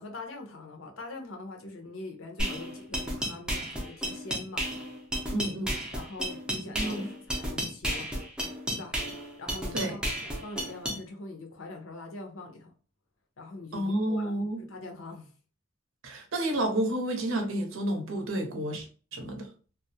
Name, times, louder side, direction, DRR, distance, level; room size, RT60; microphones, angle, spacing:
voice 1, 0.0-5.0 5.4-5.5 5.9-8.1 8.7-9.0 9.4-12.7 13.4-14.3 14.6-15.3, left 2 dB, 85° left, 0.6 m, -43 dB
sound 1, 2.4-11.0, equal, 5° right, 0.4 m, -33 dB
voice 2, 5.3-5.7 6.6-7.1 9.7-10.0 13.7-14.6 16.0-18.9 19.1-19.5, right 1 dB, 75° right, 0.6 m, -30 dB
2.3 x 2.0 x 2.7 m
head